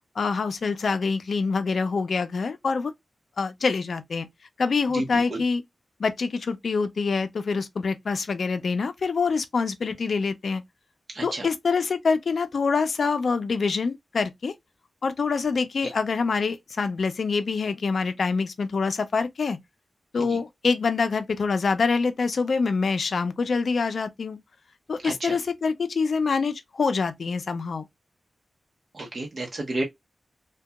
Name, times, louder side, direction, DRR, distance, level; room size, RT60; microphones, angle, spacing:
voice 1, 0.2-2.9 3.4-4.3 4.6-5.6 6.0-10.6 11.2-14.5 15.0-19.6 20.1-24.4 24.9-27.8, left 4 dB, 70° left, 0.4 m, -25 dB
voice 2, 4.9-5.4 11.1-11.5 20.2-20.4 25.0-25.4 28.9-29.8, right 2 dB, 50° right, 0.7 m, -31 dB
2.7 x 2.2 x 2.3 m
wide cardioid pair, 75°, 0 cm